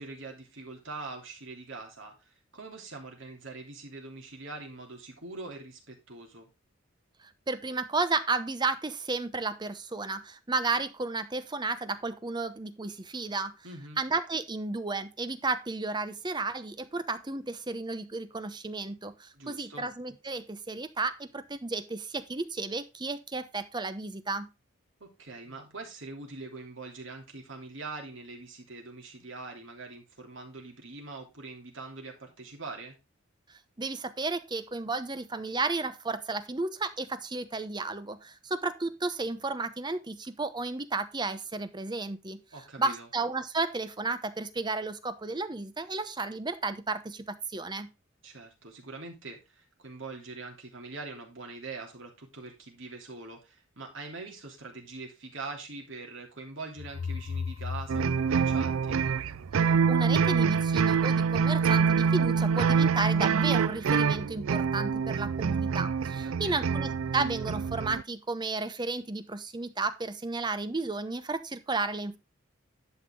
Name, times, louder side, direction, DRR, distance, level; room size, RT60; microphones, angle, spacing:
voice 1, 0.0-6.5 13.6-14.0 19.3-19.9 25.0-33.0 42.5-43.1 48.2-59.0 66.2-66.7, right 3 dB, 65° right, 1 dB, 3.1 m, -43 dB
voice 2, 7.5-13.5 14.0-24.5 33.5-42.4 42.8-47.9 59.9-72.2, right 3 dB, 20° right, 11 dB, 0.8 m, -33 dB
sound 1, 56.8-59.7, left 5 dB, 65° left, 0.4 m, -37 dB
sound 2, 57.9-68.0, right 6 dB, 80° right, 0.4 m, -26 dB
11.0 x 5.9 x 3.7 m, 0.26 s
head